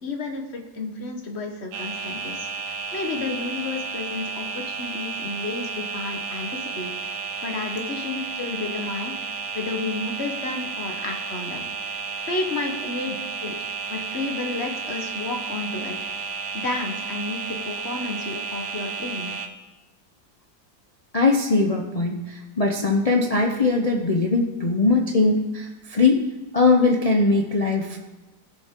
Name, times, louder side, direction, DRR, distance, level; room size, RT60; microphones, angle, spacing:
voice 1, 0.0-6.9 7.4-11.7 12.2-13.2 13.4-13.6 13.9-15.9 16.5-19.3, left 3 dB, 40° left, 3 dB, 1.3 m, -31 dB
sound 1, 1.7-19.5, right 5 dB, 65° right, 1.3 m, -32 dB
voice 2, 21.1-26.2 26.5-28.1, left 3 dB, 70° left, 1 dB, 0.3 m, -21 dB
16.0 x 6.9 x 3.7 m, 1.2 s
omnidirectional pair, 2.0 m